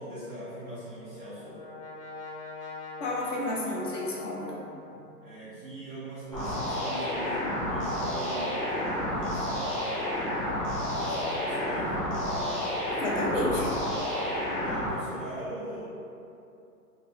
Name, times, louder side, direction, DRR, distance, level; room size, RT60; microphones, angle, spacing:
voice 1, 0.0-1.6 4.9-9.6 10.9-12.4 14.6-15.8, right 1 dB, 5° right, -15 dB, 0.5 m, -40 dB
Brass instrument, 0.7-5.5, left 3 dB, 75° left, 1.1 m, -43 dB
voice 2, 3.0-4.6 13.0-13.7, left 1 dB, 55° left, -4 dB, 0.5 m, -30 dB
sound 1, 6.3-14.9, left 1 dB, 20° left, 0.8 m, -30 dB
2.9 x 2.8 x 3.0 m, 2.6 s
hypercardioid pair, 170°, 47 cm